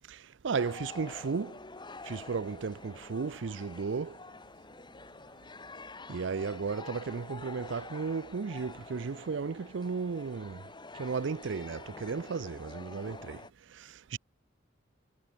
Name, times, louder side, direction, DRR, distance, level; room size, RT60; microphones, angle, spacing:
voice 1, 0.1-1.6 2.0-4.2 6.1-10.6 11.0-13.4 13.7-14.2, right 5 dB, 70° right, 0.5 m, -34 dB
sound 1, 0.6-13.5, left 3 dB, 25° left, 2.2 m, -48 dB
head